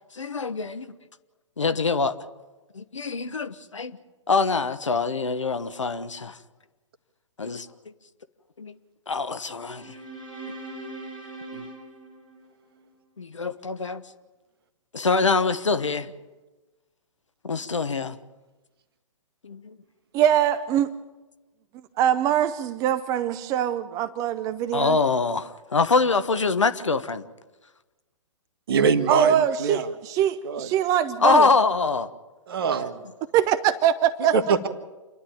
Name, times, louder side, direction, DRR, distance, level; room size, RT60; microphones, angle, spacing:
voice 1, 0.1-0.9 1.6-2.2 2.7-4.0 4.3-6.4 7.4-7.9 8.6-8.7 9.1-10.0 11.5-11.6 13.2-14.0 14.9-16.1 17.4-18.2 19.4-19.8 24.7-27.2 31.2-32.1, left 4 dB, 70° left, 12 dB, 1.2 m, -24 dB
sound 1, 9.5-12.9, right 2 dB, 85° left, 7.8 m, -41 dB
voice 2, 20.1-20.9 22.0-25.0 29.1-31.5 33.3-34.3, right 10 dB, 20° right, 13 dB, 0.6 m, -23 dB
voice 3, 28.7-29.9 30.4-30.7 32.5-33.0 34.3-34.7, right 5 dB, 50° right, 9 dB, 1.5 m, -23 dB
28.0 x 11.5 x 8.8 m, 1.1 s
figure-of-eight pair, 120°, 16 cm